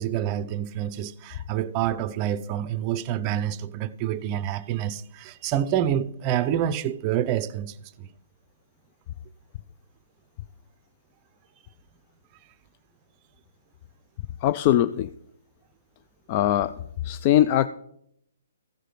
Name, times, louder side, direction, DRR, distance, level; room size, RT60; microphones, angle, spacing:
voice 1, 0.0-8.1, right 10 dB, 30° right, 0.5 m, -27 dB
voice 2, 14.4-15.1 16.3-16.7 17.0-17.7, left 12 dB, 35° left, 0.3 m, -21 dB
14.5 x 5.0 x 5.8 m
hypercardioid pair, 140°, 0 cm